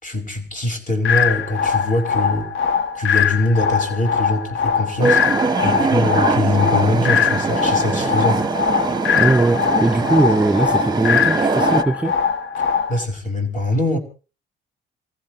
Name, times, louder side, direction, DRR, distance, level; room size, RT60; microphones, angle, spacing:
voice 1, 0.0-2.5 2.9-5.2 5.6-8.4 12.9-14.0, left 2 dB, 40° left, 5.1 m, -22 dB
sound 1, 1.0-13.0, left 7 dB, 75° left, 1.1 m, -21 dB
sound 2, 5.0-11.8, right 4 dB, 20° right, 0.8 m, -22 dB
voice 2, 9.2-12.2, right 2 dB, 5° right, 2.0 m, -19 dB
28.5 x 15.5 x 3.1 m
cardioid pair, 90°, 20 cm